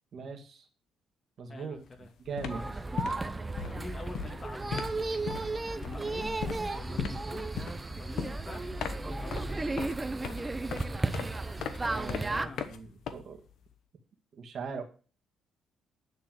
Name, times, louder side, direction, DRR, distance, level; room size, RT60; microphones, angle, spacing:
voice 1, 0.1-0.7 1.4-1.8 2.3-2.6 11.8-13.4 14.3-14.8, right 5 dB, 55° right, 4 dB, 1.9 m, -40 dB
voice 2, 1.5-2.1 2.5-2.7 3.7-5.0 5.8-6.4 6.7-7.5 8.0-9.8 12.3-12.6, left 3 dB, 35° left, 2 dB, 2.3 m, -46 dB
sound 1, 1.8-2.0 2.2-13.7, left 7 dB, 75° left, 1.1 m, -39 dB
sound 2, 2.5-12.5, right 2 dB, 20° right, 0.7 m, -34 dB
9.5 x 4.5 x 7.6 m, 0.37 s
cardioid pair, 90°, 0 cm